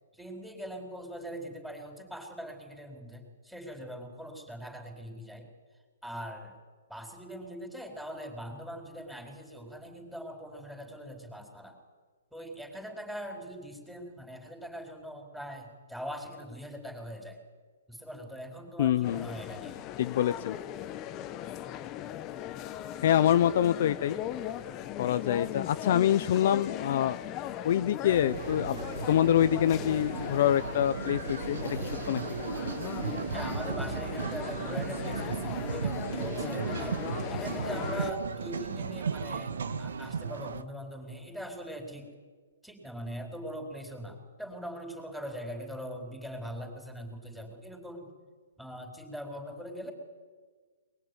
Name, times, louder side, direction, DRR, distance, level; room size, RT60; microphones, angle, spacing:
voice 1, 0.1-5.5 6.0-6.6 6.9-11.8 12.3-17.4 17.9-19.8 33.3-42.1 42.6-48.1 48.6-49.9, equal, ahead, 2 dB, 4.7 m, -41 dB
voice 2, 18.8-19.3 20.0-20.6 23.0-24.2 25.0-27.2 27.6-28.7 29.1-32.2, left 10 dB, 50° left, 12 dB, 0.7 m, -26 dB
sound 1, 19.0-38.1, left 12 dB, 25° left, 1.1 m, -39 dB
sound 2, 28.1-40.6, right 5 dB, 80° right, 1.7 m, -35 dB
22.5 x 22.0 x 9.8 m, 1.5 s
hypercardioid pair, 155°, 0 cm